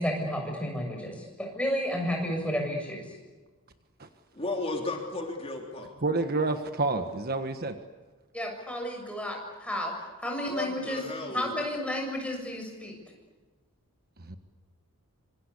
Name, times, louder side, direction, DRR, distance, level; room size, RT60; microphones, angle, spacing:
voice 1, 0.0-3.0 8.3-9.9 10.2-11.0 11.3-13.0, equal, 5° left, 1 dB, 7.0 m, -32 dB
voice 2, 4.3-5.9 10.4-11.5, left 2 dB, 25° left, 1 dB, 3.4 m, -34 dB
voice 3, 6.0-7.8 14.3-14.4, right 3 dB, 45° right, 7 dB, 1.4 m, -28 dB
26.0 x 25.5 x 8.4 m, 1.3 s
head